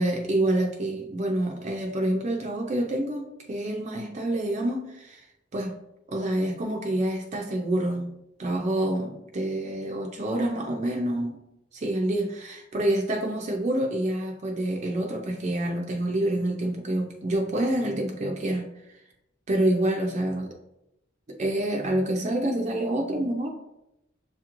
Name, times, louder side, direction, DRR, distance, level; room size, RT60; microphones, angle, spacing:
voice 1, 0.0-5.2 5.5-5.7 6.1-8.1 8.4-11.3 11.7-18.6 19.5-20.5 21.4-23.5, right 1 dB, 35° right, 1 dB, 0.5 m, -27 dB
6.8 x 2.9 x 2.5 m, 0.86 s
head